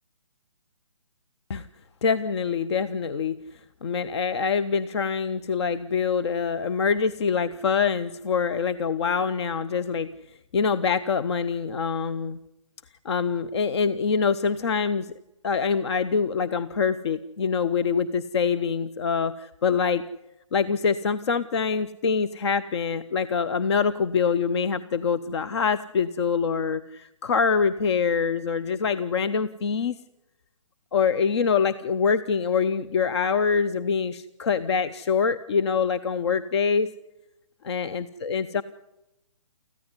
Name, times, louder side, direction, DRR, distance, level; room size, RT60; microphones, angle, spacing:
voice 1, 2.0-3.4 3.8-10.1 10.5-12.4 13.0-15.1 15.4-20.0 20.5-30.0 30.9-36.9 37.6-38.6, left 6 dB, 55° left, 15 dB, 0.7 m, -25 dB
25.0 x 15.0 x 9.7 m, 0.96 s
hypercardioid pair, 150°, 17 cm